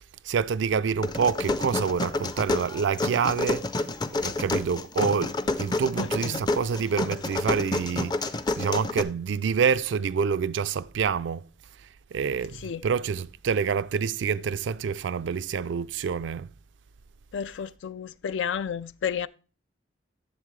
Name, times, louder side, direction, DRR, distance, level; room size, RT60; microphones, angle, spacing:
voice 1, 0.0-3.7 4.1-11.5 11.8-16.5, right 6 dB, 75° right, 0.4 m, -27 dB
sound 1, 1.0-9.0, left 2 dB, 20° left, 0.4 m, -29 dB
voice 2, 6.0-6.4 12.6-12.8 17.3-19.3, left 7 dB, 80° left, 0.4 m, -32 dB
11.0 x 7.3 x 3.2 m
head